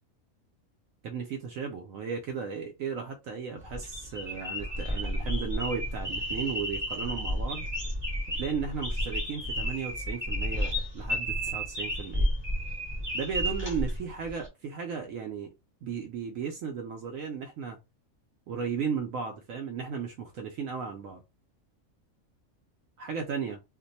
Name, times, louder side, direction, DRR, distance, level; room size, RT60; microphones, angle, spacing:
voice 1, 1.0-7.7 8.3-12.3 13.1-15.5 15.8-17.8 18.5-21.2 23.0-23.6, right 6 dB, 75° right, 1.0 m, -35 dB
sound 1, 3.6-14.5, equal, 20° right, 1.1 m, -32 dB
2.5 x 2.2 x 3.9 m
omnidirectional pair, 1.5 m